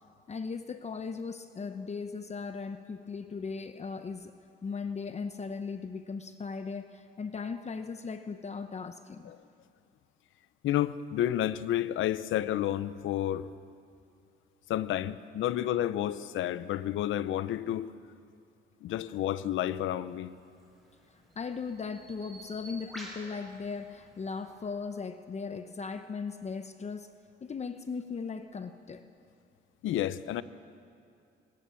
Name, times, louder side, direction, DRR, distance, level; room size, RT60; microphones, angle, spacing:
voice 1, 0.3-4.3 4.6-9.3 21.1-27.1 27.4-29.0, left 5 dB, 35° left, 0.9 m, -38 dB
voice 2, 10.6-13.5 14.7-17.9 18.8-20.4 29.8-30.4, left 12 dB, 80° left, 0.8 m, -30 dB
Bird vocalization bird call bird song, 20.5-24.7, right 1 dB, ahead, 7.6 m, -50 dB
23.5 x 20.0 x 7.1 m
cardioid pair, 90°, 20 cm